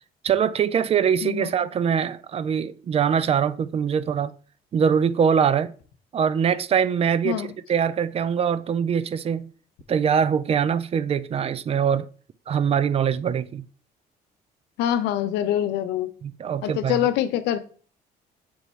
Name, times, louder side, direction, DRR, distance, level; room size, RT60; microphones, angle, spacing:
voice 1, 0.2-4.3 4.7-5.7 6.1-9.5 9.9-12.1 12.5-13.7 16.2-17.1, right 7 dB, 35° right, 0.4 m, -23 dB
voice 2, 7.2-7.5 14.8-16.1 16.6-17.7, left 11 dB, 90° left, 0.7 m, -25 dB
7.1 x 3.0 x 4.4 m
cardioid pair, 110°, 17 cm